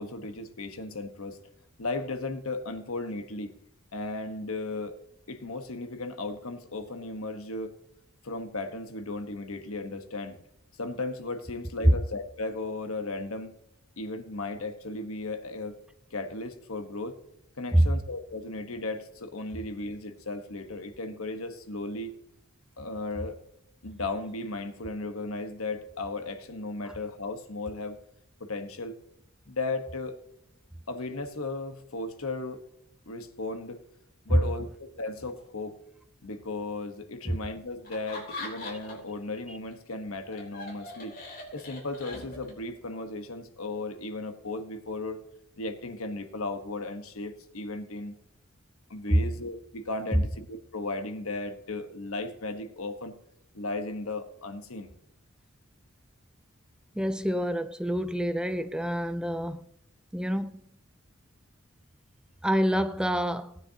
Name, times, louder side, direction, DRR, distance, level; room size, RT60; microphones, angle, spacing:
voice 1, 0.0-1.4 1.8-3.5 3.9-5.0 5.3-7.7 8.2-10.4 10.8-13.5 14.0-15.8 16.1-17.2 17.6-22.2 22.8-23.4 23.8-28.0 28.4-29.0 29.5-30.2 30.9-32.6 33.1-33.8 34.2-35.8 36.2-41.2 41.5-45.2 45.6-48.2 48.9-53.1 53.5-54.9, left 2 dB, 80° left, 1.3 m, -35 dB
Laughter, 37.8-39.1 39.5-42.7, left 2 dB, 45° left, 3.6 m, -41 dB
voice 2, 57.0-59.6 60.1-60.5 62.4-63.5, equal, 5° right, 0.4 m, -26 dB
18.0 x 9.8 x 2.9 m
head